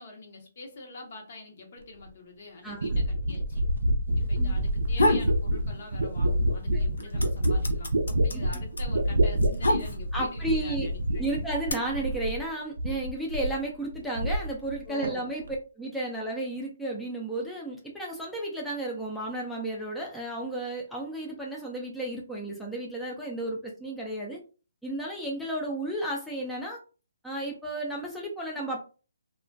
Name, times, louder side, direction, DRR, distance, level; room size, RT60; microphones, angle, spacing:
voice 1, 0.0-3.6 4.2-11.4 14.8-15.3, left 3 dB, 50° left, 1 dB, 0.9 m, -45 dB
sound 1, 2.1-2.2 2.8-12.5 12.8-13.6 13.9-14.8 15.0-15.6, right 1 dB, 75° right, 0.4 m, -27 dB
sound 2, 4.7-5.3 5.7-6.5 6.7-10.3 11.1-11.7, left 1 dB, 80° left, 0.5 m, -27 dB
voice 2, 10.1-10.9 11.2-15.4 15.8-24.4 24.8-26.8 27.2-28.8, right 1 dB, ahead, -4 dB, 0.4 m, -33 dB
2.3 x 2.1 x 2.5 m, 0.35 s
hypercardioid pair, 140°, 0 cm